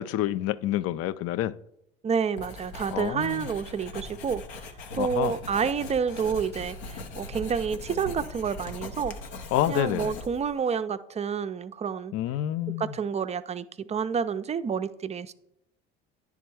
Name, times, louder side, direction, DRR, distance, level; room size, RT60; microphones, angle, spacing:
voice 1, 0.0-1.5 2.9-3.5 5.0-5.3 9.5-10.2 12.1-12.9, left 13 dB, 50° left, 0.4 m, -28 dB
voice 2, 2.0-4.4 4.9-9.2 9.7-12.1 12.8-15.3, right 6 dB, 20° right, 0.4 m, -29 dB
Writing, 2.4-10.6, left 2 dB, 80° left, 0.9 m, -40 dB
10.0 x 3.5 x 4.6 m
hypercardioid pair, 70°, 30 cm